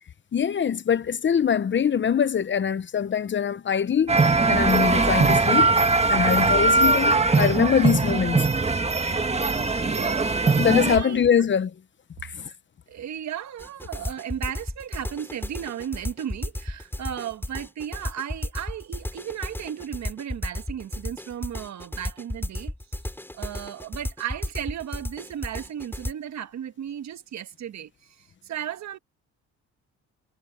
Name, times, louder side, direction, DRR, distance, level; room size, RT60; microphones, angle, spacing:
voice 1, 0.3-4.2 4.5-5.7 6.1-8.5 10.6-11.7 12.2-12.4, left 8 dB, 40° left, 0.8 m, -23 dB
sound 1, 4.1-11.0, right 3 dB, 20° right, 1.6 m, -21 dB
voice 2, 9.6-10.2 10.9-11.4 12.4-12.6 12.9-22.7 23.3-27.9 28.2-29.0, right 10 dB, 65° right, 1.8 m, -35 dB
sound 2, 13.6-26.1, left 1 dB, 5° left, 3.7 m, -33 dB
cardioid pair, 90°, 30 cm